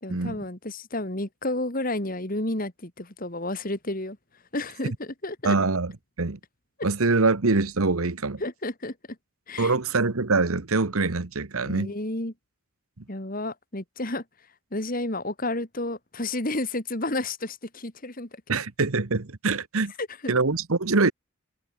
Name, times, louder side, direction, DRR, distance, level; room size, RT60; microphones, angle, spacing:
voice 1, 0.0-4.2 4.5-5.6 8.4-9.0 9.5-9.7 11.6-12.3 13.1-14.2 14.7-18.4 20.0-20.3, left 2 dB, 40° left, 2.6 m, -31 dB
voice 2, 5.4-5.9 6.2-6.4 6.8-8.4 9.6-11.9 18.5-19.9 20.3-21.1, right 3 dB, 80° right, 1.2 m, -24 dB
head